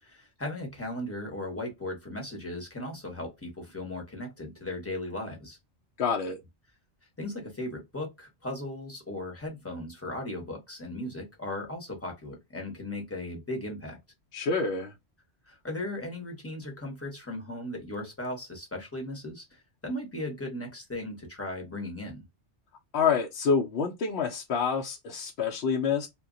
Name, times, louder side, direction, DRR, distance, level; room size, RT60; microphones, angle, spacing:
voice 1, 0.0-5.6 7.2-14.0 15.5-22.3, left 1 dB, 15° left, 0.7 m, -37 dB
voice 2, 6.0-6.4 14.3-14.9 22.9-26.1, left 5 dB, 70° left, 0.8 m, -27 dB
2.2 x 2.1 x 3.6 m
omnidirectional pair, 1.2 m